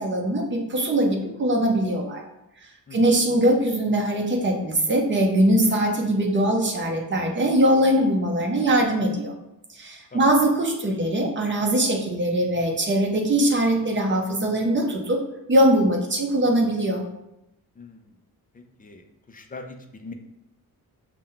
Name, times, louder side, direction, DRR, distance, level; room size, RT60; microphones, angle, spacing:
voice 1, 0.0-2.2 2.9-9.3 9.8-15.2 15.5-17.0, right 1 dB, 30° right, 1 dB, 0.7 m, -21 dB
voice 2, 17.8-18.1 18.5-20.1, left 3 dB, 25° left, 4 dB, 0.4 m, -42 dB
5.7 x 2.2 x 3.7 m, 0.87 s
wide cardioid pair, 150°, 37 cm